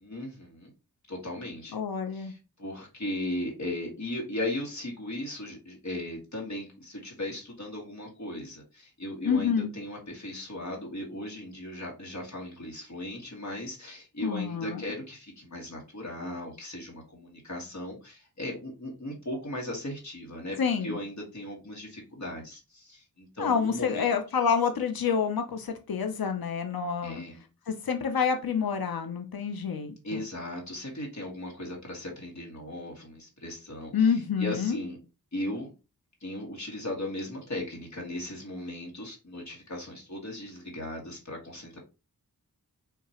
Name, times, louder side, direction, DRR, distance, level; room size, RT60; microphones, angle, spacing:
voice 1, 0.0-0.7 1.1-1.7 2.1-24.1 27.0-27.4 30.0-35.0 35.3-35.7 36.2-41.8, left 1 dB, 50° left, -2 dB, 1.7 m, -37 dB
voice 2, 1.7-2.3 9.2-9.7 14.2-14.8 20.6-21.0 23.4-27.2 27.7-30.2 33.9-34.8, left 6 dB, 80° left, 6 dB, 0.7 m, -28 dB
5.9 x 2.9 x 2.9 m, 0.29 s
wide cardioid pair, 55°, 36 cm